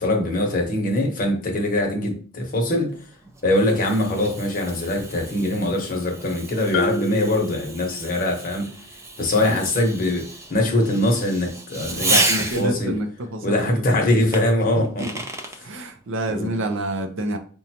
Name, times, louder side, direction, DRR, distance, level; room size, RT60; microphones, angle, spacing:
voice 1, 0.0-2.9 3.4-8.7 9.2-12.3 12.6-12.9 13.4-15.0 16.3-16.5, left 1 dB, 40° left, 2 dB, 0.9 m, -22 dB
Fireworks, 3.0-12.9 14.3-15.6, right 2 dB, 15° right, 0.4 m, -31 dB
Marimba xylophone, 6.7-8.5, left 2 dB, 75° left, 0.4 m, -30 dB
voice 2, 11.9-13.9 14.7-15.2 15.6-17.4, right 1 dB, 65° right, 6 dB, 0.6 m, -28 dB
5.0 x 2.2 x 2.8 m, 0.42 s
head